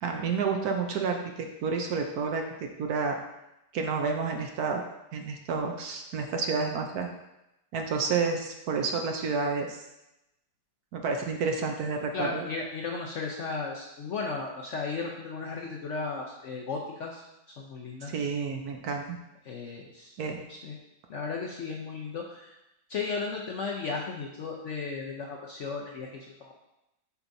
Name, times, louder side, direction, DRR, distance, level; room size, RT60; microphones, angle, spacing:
voice 1, 0.0-3.2 3.7-4.8 5.1-7.1 7.7-9.8 10.9-12.5 18.0-19.2 20.2-20.4, right 5 dB, 65° right, 3 dB, 1.1 m, -30 dB
voice 2, 12.1-17.2 17.6-18.1 19.5-20.1 20.6-20.8 21.1-22.5 22.9-26.1 26.4-26.5, left 4 dB, 60° left, -1 dB, 0.8 m, -35 dB
7.0 x 5.7 x 2.7 m, 0.89 s
omnidirectional pair, 1.9 m